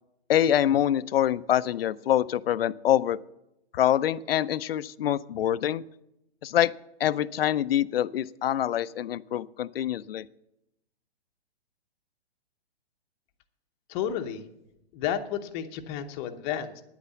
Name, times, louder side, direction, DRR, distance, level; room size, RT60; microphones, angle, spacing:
voice 1, 0.3-3.2 3.7-5.8 6.4-6.7 7.0-10.3, left 11 dB, 60° left, 16 dB, 0.5 m, -25 dB
voice 2, 13.9-14.4 14.9-16.8, left 9 dB, 25° left, 6 dB, 0.8 m, -31 dB
9.8 x 8.4 x 8.2 m, 0.88 s
hypercardioid pair, 140°, 32 cm